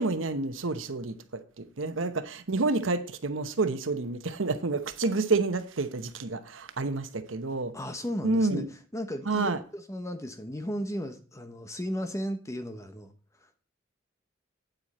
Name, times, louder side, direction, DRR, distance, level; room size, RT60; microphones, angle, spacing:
voice 1, 0.0-7.7 8.2-8.7 9.3-9.6, right 3 dB, 85° right, 1.0 m, -29 dB
voice 2, 7.7-8.6 8.9-13.1 13.4-13.6, equal, 15° left, 1.0 m, -35 dB
9.0 x 8.1 x 4.2 m
head